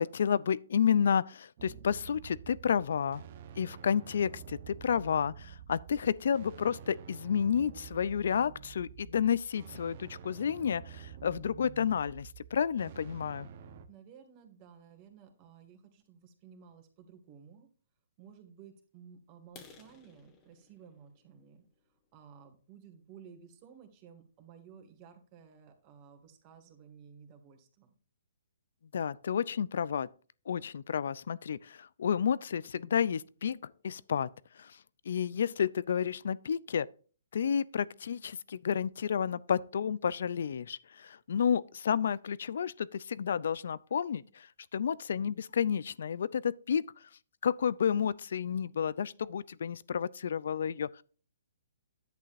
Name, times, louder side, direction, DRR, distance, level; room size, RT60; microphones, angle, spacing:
voice 1, 0.0-3.2 3.6-13.5 28.9-30.1 30.5-34.3 34.6-34.8 35.1-36.9 37.3-44.5 44.7-46.9 47.4-51.0, left 7 dB, 65° left, 0.5 m, -31 dB
sound 1, 1.6-13.8, right 9 dB, 45° right, 1.0 m, -49 dB
voice 2, 13.9-17.7 18.2-21.6 22.1-27.9, right 7 dB, 30° right, 2.2 m, -55 dB
sound 2, 19.4-23.2 23.7-23.9 24.4-24.5 24.9-25.1 25.4-25.5 25.9-26.0 26.3-26.8, left 6 dB, 25° left, 1.5 m, -59 dB
10.5 x 8.4 x 2.6 m
hypercardioid pair, 150°, 0 cm